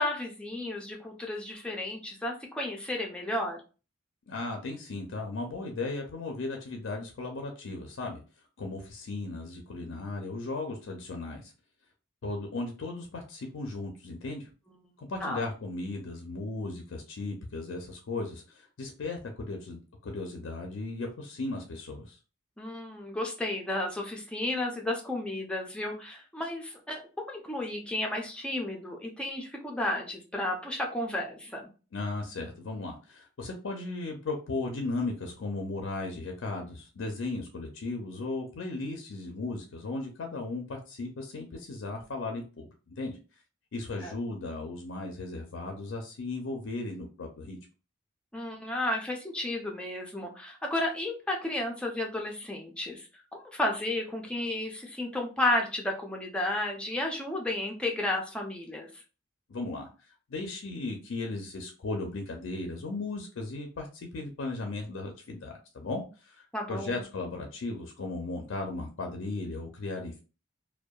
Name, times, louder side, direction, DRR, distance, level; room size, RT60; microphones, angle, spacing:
voice 1, 0.0-3.6 15.2-15.4 22.6-27.0 27.3-31.7 44.0-44.1 48.3-59.0 66.5-66.9, left 1 dB, 5° left, 0 dB, 0.4 m, -32 dB
voice 2, 4.3-8.2 8.6-11.5 12.2-14.5 15.0-22.2 31.9-43.2 43.7-47.6 59.5-70.2, left 2 dB, 70° left, 3 dB, 0.4 m, -36 dB
2.7 x 2.2 x 2.2 m, 0.34 s
head